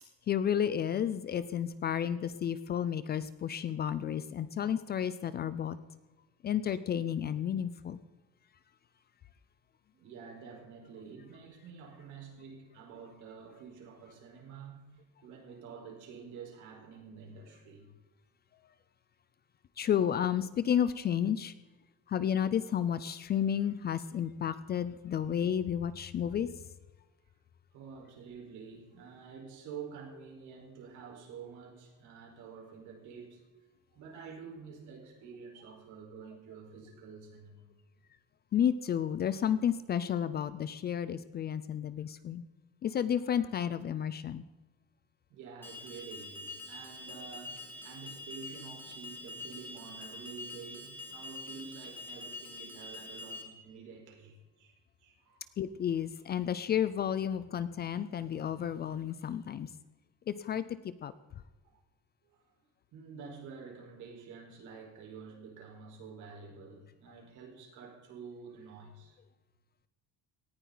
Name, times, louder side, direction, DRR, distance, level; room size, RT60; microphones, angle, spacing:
voice 1, 0.3-5.8 6.4-8.0 19.8-21.5 22.1-26.5 38.5-42.4 42.8-44.4 55.6-59.7 60.3-60.6 61.0-61.1, left 9 dB, 30° left, 14 dB, 0.5 m, -31 dB
voice 2, 9.9-17.9 27.7-33.4 33.9-37.7 45.3-55.5 61.6-61.8 62.3-62.4 62.9-69.2, right 5 dB, 60° right, 1 dB, 4.6 m, -49 dB
Alarm, 45.6-53.4, left 2 dB, 5° left, 2.0 m, -45 dB
18.5 x 14.5 x 4.0 m, 1.2 s
cardioid pair, 170°, 33 cm